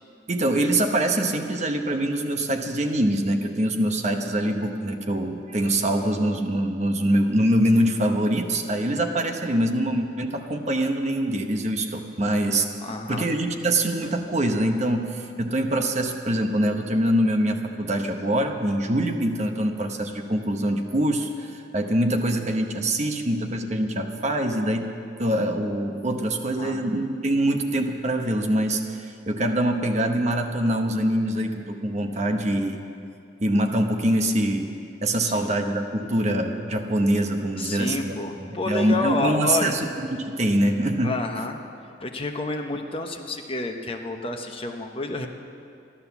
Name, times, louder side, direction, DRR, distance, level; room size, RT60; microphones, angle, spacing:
voice 1, 0.3-12.7 13.1-24.9 25.2-32.8 33.4-34.7 35.0-35.8 36.1-41.2, right 1 dB, 40° right, 5 dB, 0.9 m, -24 dB
voice 2, 12.8-13.3 26.6-27.0 35.2-35.5 37.6-39.7 41.0-41.6 42.0-45.3, left 3 dB, 30° left, 4 dB, 0.9 m, -29 dB
14.0 x 11.5 x 7.0 m, 2.5 s
head